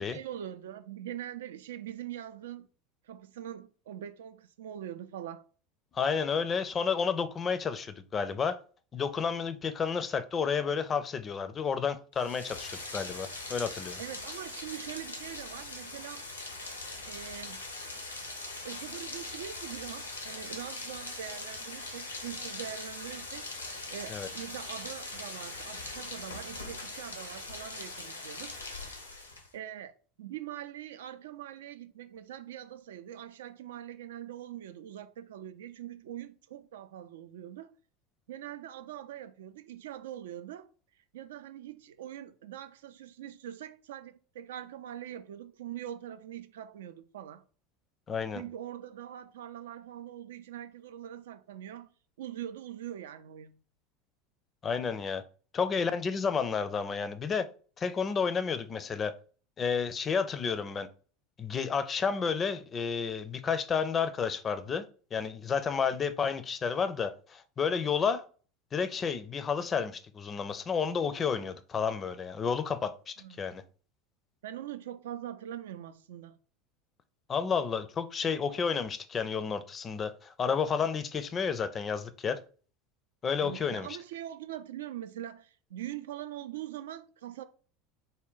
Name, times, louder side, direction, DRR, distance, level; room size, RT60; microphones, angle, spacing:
voice 1, 0.0-2.7 3.0-5.5 14.0-16.3 17.0-17.6 18.6-23.5 23.9-28.6 29.5-37.7 38.3-40.7 41.1-47.4 48.3-51.9 52.2-53.5 73.2-73.5 74.4-76.4 83.4-87.4, right 11 dB, 70° right, 0.3 m, -43 dB
voice 2, 5.9-8.6 8.9-14.0 24.1-24.3 48.1-48.4 54.6-55.2 55.5-57.5 57.8-59.1 59.6-60.9 61.4-64.8 65.1-68.2 68.7-73.6 77.3-82.4 83.2-83.9, left 6 dB, 30° left, 0.4 m, -31 dB
Rain, 12.1-29.5, left 2 dB, 90° left, 0.6 m, -41 dB
3.5 x 2.1 x 3.7 m
figure-of-eight pair, 75°, 0 cm